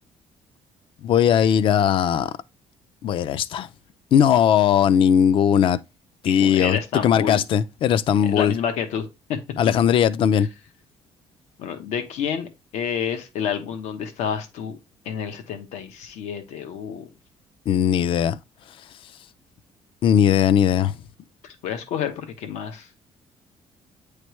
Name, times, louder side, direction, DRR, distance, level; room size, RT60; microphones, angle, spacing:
voice 1, 1.0-2.3 3.0-3.7 4.1-5.8 6.2-8.5 9.6-10.5 17.7-18.4 20.0-20.9, left 9 dB, 50° left, 0.4 m, -19 dB
voice 2, 6.2-7.4 8.2-9.4 10.3-10.5 11.6-14.8 15.0-17.1 21.4-22.9, left 7 dB, 90° left, 1.0 m, -29 dB
9.3 x 3.3 x 3.1 m
cardioid pair, 145°, 12 cm